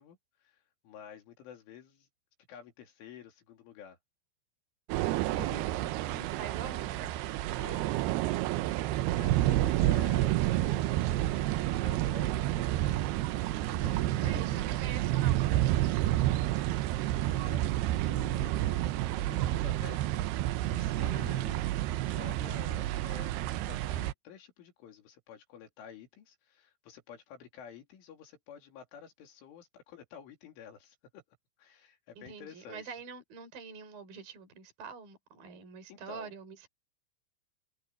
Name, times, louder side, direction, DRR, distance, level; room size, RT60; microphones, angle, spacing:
voice 1, 0.0-2.1 2.5-4.0 7.6-7.9 8.8-13.0 13.7-14.8 16.7-16.9 17.2-20.3 20.6-21.6 22.0-31.2 31.6-33.0 35.9-36.3, left 8 dB, 75° left, 5.8 m, -50 dB
sound 1, 4.9-24.1, right 15 dB, 90° right, 2.3 m, -30 dB
voice 2, 5.3-7.1 7.4-7.6 14.2-16.3 21.1-21.5 32.2-36.7, right 5 dB, 50° right, 6.1 m, -46 dB
omnidirectional pair, 5.6 m